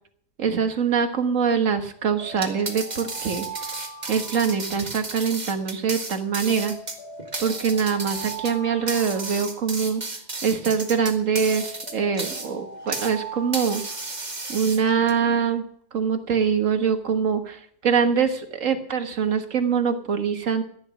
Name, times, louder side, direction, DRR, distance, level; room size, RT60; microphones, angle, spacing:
voice 1, 0.4-3.8 4.1-6.8 7.4-10.0 10.4-13.8 14.5-15.6 15.9-20.6, right 6 dB, 45° right, 7 dB, 1.7 m, -24 dB
sound 1, 2.2-5.4 6.5-10.3 11.4-14.6, right 3 dB, 55° left, 3.8 m, -41 dB
sound 2, 2.3-13.2 13.5-15.1, right 3 dB, 25° right, 1.7 m, -33 dB
14.5 x 10.5 x 5.9 m, 0.63 s
omnidirectional pair, 2.0 m